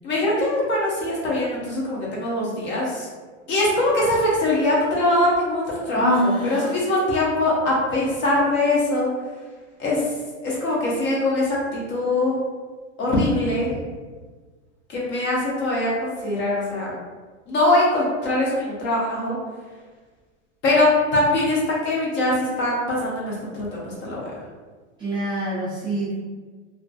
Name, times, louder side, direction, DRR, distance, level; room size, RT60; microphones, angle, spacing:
voice 1, 0.0-3.1 3.5-6.2 6.4-9.1 9.8-10.1 10.4-12.4 13.0-13.8 14.9-16.9 17.5-19.4 20.6-24.3, left 1 dB, 30° left, -5 dB, 0.7 m, -22 dB
voice 2, 5.9-6.7 25.0-26.1, right 1 dB, 15° right, -12 dB, 0.4 m, -25 dB
2.5 x 2.4 x 2.3 m, 1.4 s
supercardioid pair, 140°, 37 cm